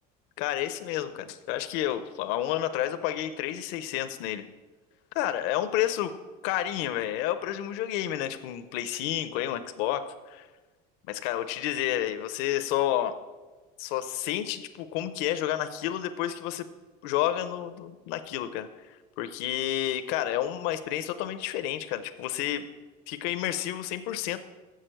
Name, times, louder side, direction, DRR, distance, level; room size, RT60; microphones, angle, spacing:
voice 1, 0.4-4.4 5.1-6.1 6.4-10.0 10.3-10.5 11.1-13.1 13.8-16.7 17.0-22.6 23.1-24.4, left 12 dB, 80° left, 10 dB, 0.6 m, -30 dB
7.6 x 6.5 x 7.7 m, 1.2 s
cardioid pair, 155°, 20 cm